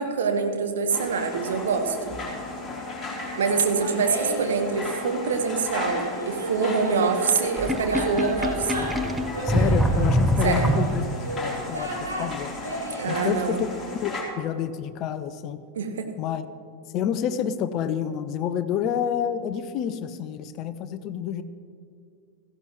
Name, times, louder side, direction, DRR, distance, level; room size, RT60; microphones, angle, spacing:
voice 1, 0.0-2.2 3.4-8.7 10.4-10.7 13.0-13.6 15.7-16.1, right 5 dB, 65° right, 6 dB, 1.2 m, -25 dB
sound 1, 0.9-14.2, left 2 dB, 15° left, 3.2 m, -35 dB
Laughter, 3.6-4.6 5.8-13.2, right 1 dB, 80° right, 2.2 m, -33 dB
Sink (filling or washing), 7.6-11.3, equal, 5° right, 0.7 m, -24 dB
voice 2, 9.4-11.1 11.4-12.5 13.1-13.7 14.0-15.6 16.2-16.4 16.9-21.4, left 9 dB, 40° left, 13 dB, 0.6 m, -28 dB
16.5 x 14.0 x 3.0 m, 2.3 s
figure-of-eight pair, 90°, 0 cm